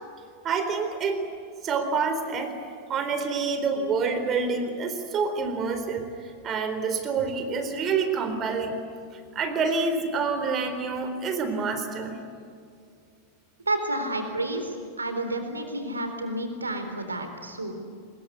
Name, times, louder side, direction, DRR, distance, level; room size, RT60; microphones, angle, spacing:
voice 1, 0.4-1.2 1.6-2.6 2.9-8.8 9.1-12.2, right 4 dB, 30° right, 7 dB, 4.0 m, -27 dB
voice 2, 13.7-17.8, right 1 dB, 80° right, 7 dB, 3.8 m, -30 dB
24.5 x 21.5 x 9.6 m, 2.3 s
figure-of-eight pair, 90°, 0 cm